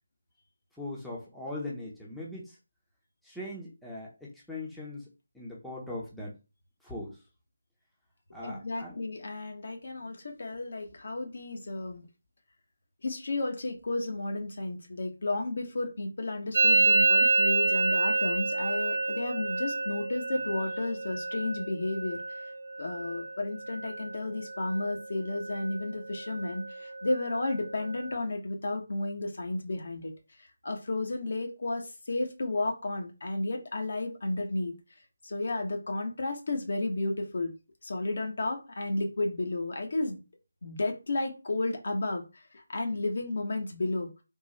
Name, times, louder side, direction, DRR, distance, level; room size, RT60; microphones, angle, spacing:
voice 1, 0.8-2.6 3.2-5.0 5.3-6.3 6.8-7.2 8.3-9.0, left 2 dB, ahead, -6 dB, 0.9 m, -40 dB
voice 2, 8.4-12.0 13.0-22.5 22.8-30.1 30.4-34.7 35.2-37.5 37.8-40.2 40.6-44.1, left 2 dB, 55° left, 3 dB, 1.2 m, -32 dB
Musical instrument, 16.5-24.2 24.4-25.0 25.3-25.9 26.1-28.2, right 3 dB, 50° right, 0.4 m, -29 dB
3.7 x 2.7 x 4.1 m, 0.29 s
figure-of-eight pair, 160°, 0 cm